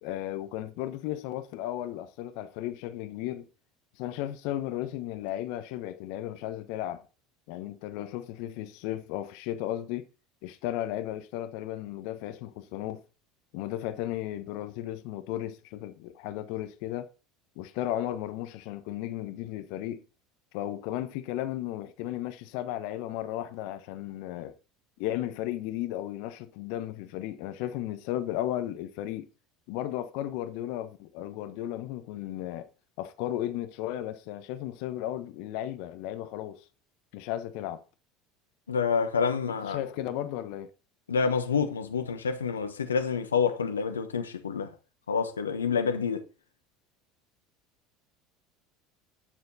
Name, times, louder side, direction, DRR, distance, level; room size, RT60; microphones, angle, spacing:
voice 1, 0.0-3.5 4.0-7.0 7.5-10.1 10.4-13.0 13.5-17.1 17.6-20.0 20.5-24.5 25.0-29.3 29.7-32.7 33.0-36.7 37.1-37.8 39.5-40.7, left 13 dB, 60° left, 1.0 m, -35 dB
voice 2, 38.7-39.8 41.1-44.7 45.1-46.2, left 6 dB, 85° left, 1.1 m, -28 dB
10.0 x 6.9 x 4.0 m
figure-of-eight pair, 70°, 0 cm